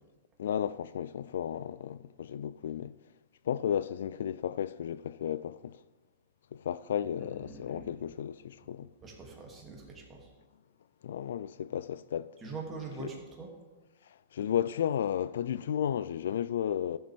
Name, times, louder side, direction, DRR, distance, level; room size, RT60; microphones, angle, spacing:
voice 1, 0.4-2.9 3.5-5.8 6.5-8.9 11.0-12.3 13.0-13.1 14.3-17.0, left 9 dB, 75° left, 0.3 m, -33 dB
voice 2, 7.2-7.9 9.0-10.3 12.4-13.5, right 4 dB, 20° right, 2.5 m, -43 dB
13.0 x 7.8 x 3.5 m
hypercardioid pair, 135°, 0 cm